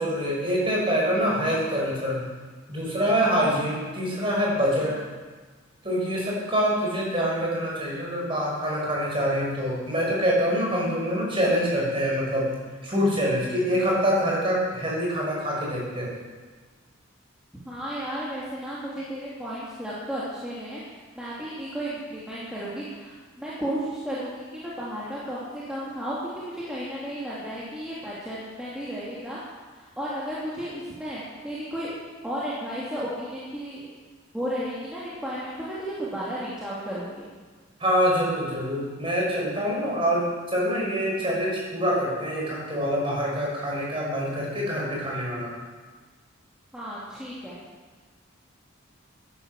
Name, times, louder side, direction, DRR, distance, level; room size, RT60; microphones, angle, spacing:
voice 1, 0.0-2.2 2.7-5.0 5.8-12.5 12.8-16.1 37.8-45.5, equal, 25° right, -4 dB, 5.6 m, -25 dB
voice 2, 17.6-29.4 29.8-31.9 32.2-34.0 34.3-37.3 46.7-47.6, equal, 5° right, -9 dB, 2.6 m, -33 dB
13.5 x 11.0 x 7.7 m, 1.4 s
head